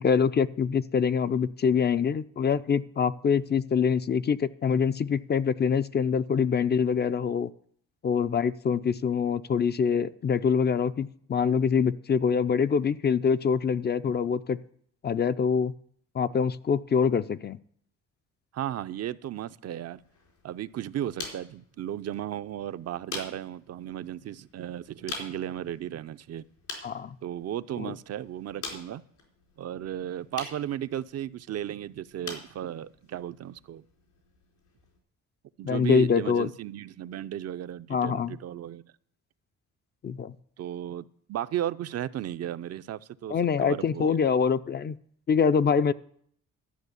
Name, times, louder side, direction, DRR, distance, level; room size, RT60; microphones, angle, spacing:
voice 1, 0.0-7.5 8.0-14.6 15.0-15.7 16.1-17.6 26.8-27.2 27.8-27.9 35.6-36.5 37.9-38.4 40.0-40.3 43.3-45.0 45.3-45.9, left 6 dB, 35° left, 13 dB, 0.5 m, -25 dB
voice 2, 18.5-20.0 20.4-26.4 27.2-29.0 29.6-33.8 35.6-38.8 40.6-44.2, right 11 dB, 55° right, 12 dB, 0.6 m, -35 dB
sound 1, 20.0-35.0, left 4 dB, 75° left, 4.3 m, -45 dB
12.5 x 6.2 x 8.2 m, 0.62 s
cardioid pair, 90°, 30 cm